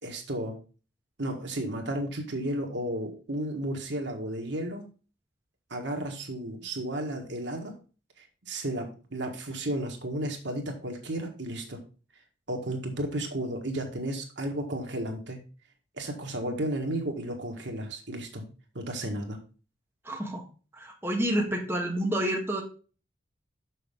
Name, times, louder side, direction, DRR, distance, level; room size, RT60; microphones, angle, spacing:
voice 1, 0.0-0.6 1.2-4.9 5.7-7.7 8.4-11.8 12.5-15.4 16.0-18.5 18.7-19.4, right 1 dB, 65° right, 3 dB, 1.6 m, -33 dB
voice 2, 20.0-20.4 20.7-22.6, right 1 dB, 10° right, 0 dB, 1.3 m, -29 dB
6.5 x 6.4 x 3.6 m, 0.35 s
head